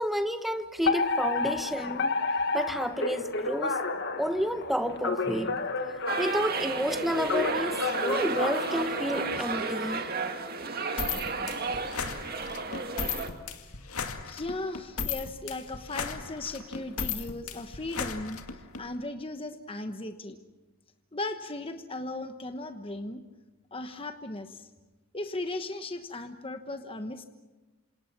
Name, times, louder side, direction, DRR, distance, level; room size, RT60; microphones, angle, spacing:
voice 1, 0.0-2.1 2.5-3.8 4.2-5.7 6.2-10.1, equal, ahead, 8 dB, 1.2 m, -30 dB
Alarm, 0.9-9.4, left 3 dB, 50° left, 1.8 m, -31 dB
sound 1, 6.1-13.3, right 4 dB, 45° right, 2.1 m, -32 dB
sound 2, 11.0-18.8, left 6 dB, 80° left, 2.1 m, -36 dB
voice 2, 14.2-18.4 18.8-20.4 21.1-23.2 23.7-24.7 25.1-27.2, left 2 dB, 25° left, 7 dB, 1.1 m, -37 dB
28.0 x 27.0 x 6.0 m, 1.2 s
head